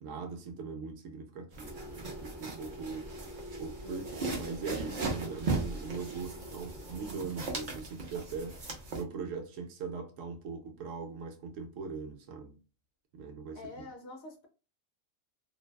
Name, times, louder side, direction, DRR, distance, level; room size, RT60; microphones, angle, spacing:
voice 1, 0.0-3.1 3.6-8.6 8.9-12.6 13.1-13.9, right 5 dB, 70° right, 0.9 m, -40 dB
sound 1, 1.5-9.0, right 3 dB, 50° right, 0.5 m, -38 dB
sound 2, 1.6-7.1, equal, 5° left, 1.0 m, -47 dB
voice 2, 3.8-4.2 13.5-14.5, left 3 dB, 60° left, 0.8 m, -46 dB
2.6 x 2.2 x 2.2 m
omnidirectional pair, 1.4 m